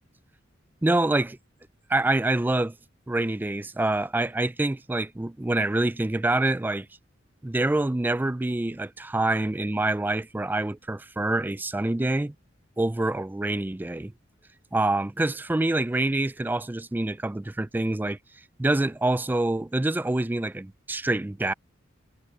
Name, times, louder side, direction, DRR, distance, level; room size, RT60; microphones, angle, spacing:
voice 1, 0.8-1.4 1.9-2.8 3.1-6.9 7.4-12.3 12.8-14.1 14.7-18.2 18.6-21.5, right 2 dB, 10° right, 0.3 m, -26 dB
head